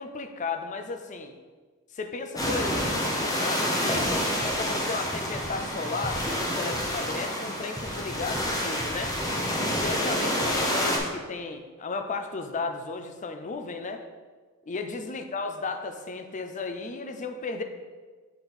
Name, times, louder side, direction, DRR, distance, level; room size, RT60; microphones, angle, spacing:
voice 1, 0.0-1.3 1.9-4.1 4.5-9.2 9.8-14.0 14.7-17.6, left 4 dB, 35° left, 6 dB, 0.5 m, -34 dB
sound 1, 2.4-11.0, equal, 15° left, 0.9 m, -28 dB
sound 2, 3.8-10.7, equal, 15° right, 0.7 m, -41 dB
6.8 x 4.1 x 4.3 m, 1.4 s
head